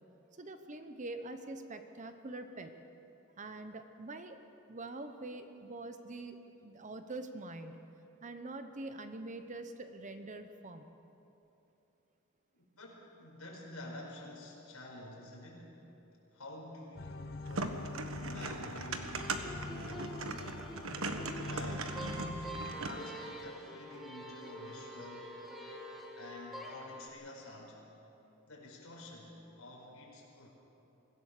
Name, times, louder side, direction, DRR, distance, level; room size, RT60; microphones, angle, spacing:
voice 1, 0.4-2.7 3.4-4.4 4.7-7.8 8.2-10.9, right 2 dB, 35° right, 8 dB, 0.9 m, -44 dB
voice 2, 12.8-15.7 16.3-20.3 21.2-25.3 26.2-27.8 28.4-30.5, left 1 dB, 75° left, -1 dB, 5.0 m, -49 dB
sound 1, 17.0-23.0, left 2 dB, 45° left, 0.8 m, -44 dB
sound 2, 17.5-23.1, right 3 dB, 70° right, 1.4 m, -40 dB
sound 3, 19.0-27.1, right 1 dB, ahead, 1.8 m, -46 dB
24.0 x 16.5 x 6.7 m, 2.9 s
head